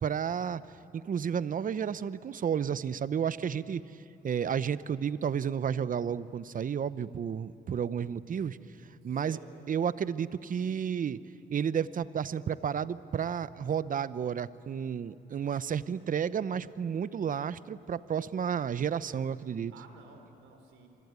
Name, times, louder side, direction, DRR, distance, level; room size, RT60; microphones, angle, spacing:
voice 1, 0.0-0.6 0.9-3.8 4.2-8.6 9.0-9.4 9.7-11.2 11.5-19.7, right 8 dB, 45° right, 16 dB, 0.8 m, -31 dB
voice 2, 9.0-9.6 19.7-20.9, right 5 dB, 90° right, 6 dB, 3.9 m, -54 dB
26.5 x 23.5 x 9.5 m, 2.8 s
cardioid pair, 90°, 20 cm